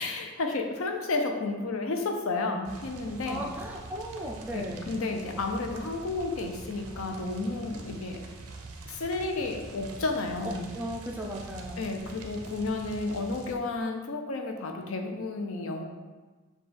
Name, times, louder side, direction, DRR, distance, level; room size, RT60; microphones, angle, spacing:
voice 1, 0.0-3.4 4.5-8.2 8.9-10.7 11.8-15.8, left 3 dB, 70° left, 4 dB, 0.5 m, -32 dB
sound 1, 2.6-13.6, right 3 dB, 90° right, 0.6 m, -44 dB
voice 2, 3.3-4.9 10.4-11.9, equal, 10° right, -1 dB, 0.3 m, -36 dB
6.5 x 2.3 x 3.3 m, 1.3 s
head